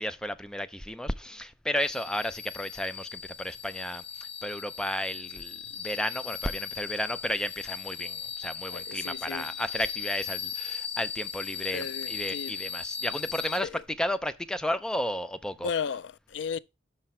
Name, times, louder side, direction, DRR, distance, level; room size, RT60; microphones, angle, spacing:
voice 1, 0.0-4.0 4.4-13.7 14.0-15.7, left 1 dB, 5° left, 0.4 m, -33 dB
sound 1, 1.8-13.6, left 7 dB, 30° left, 0.8 m, -38 dB
voice 2, 8.7-9.5 11.7-12.5 13.6-13.8 15.6-16.6, left 6 dB, 75° left, 0.4 m, -35 dB
5.8 x 5.7 x 4.3 m
head